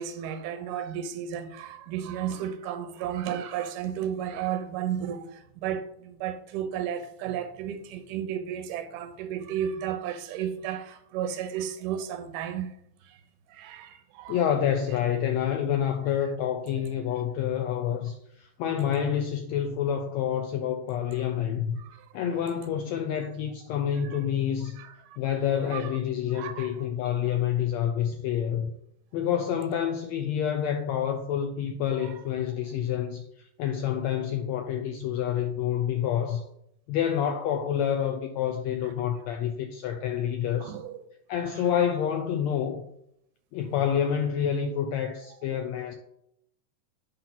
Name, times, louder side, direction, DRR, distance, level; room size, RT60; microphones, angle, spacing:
voice 1, 0.0-13.2 13.5-14.5 21.8-22.2 24.0-24.2 24.8-25.2 25.6-25.9 26.3-27.2 32.0-32.2 38.8-38.9 40.6-41.0 41.5-41.7, right 9 dB, 90° right, 2.3 m, -34 dB
voice 2, 14.3-21.7 22.1-24.8 25.2-28.7 29.1-36.4 36.9-40.8 41.3-42.8 43.5-45.9, left 9 dB, 80° left, 1.6 m, -28 dB
8.7 x 5.8 x 3.9 m
omnidirectional pair, 3.6 m